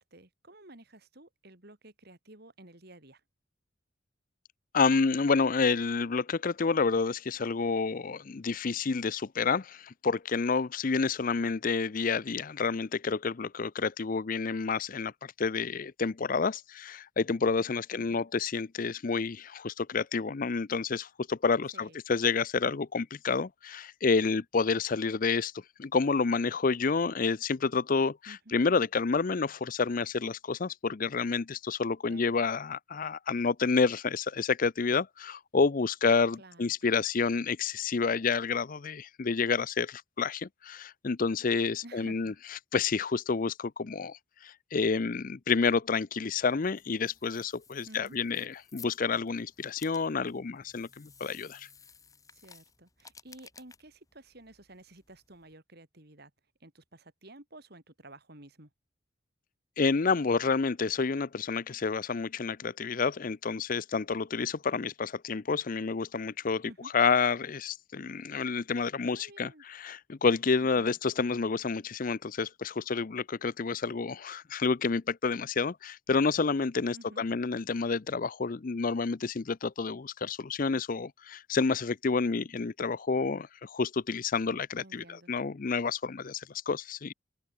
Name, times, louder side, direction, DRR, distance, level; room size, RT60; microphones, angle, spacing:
voice 1, 0.0-3.2 17.9-18.2 21.7-22.0 28.3-28.5 32.1-32.3 36.4-36.9 41.8-42.4 47.9-48.2 52.3-56.3 56.6-58.7 66.6-66.9 69.1-69.6 70.6-71.0 76.9-77.2 84.8-85.3, right 1 dB, 50° right, 3.4 m, -52 dB
voice 2, 4.7-25.5 25.8-51.7 59.8-87.1, left 4 dB, 40° left, 0.5 m, -29 dB
sound 1, 46.3-55.5, left 6 dB, 15° left, 1.7 m, -56 dB
head